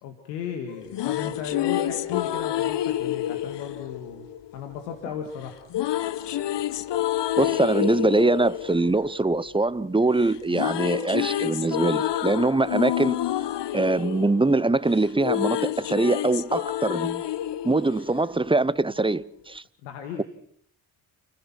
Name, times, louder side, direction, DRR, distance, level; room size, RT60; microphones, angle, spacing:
voice 1, 0.0-4.3 4.5-5.6 19.8-20.2, left 8 dB, 90° left, 2.0 m, -35 dB
sound 1, 0.7-4.8 5.7-9.9 10.2-18.7, left 12 dB, 55° left, 1.0 m, -28 dB
voice 2, 7.4-13.2 13.7-17.2 17.6-19.6, right 2 dB, 10° right, 0.8 m, -23 dB
30.0 x 15.5 x 6.1 m
hypercardioid pair, 45°, 50 cm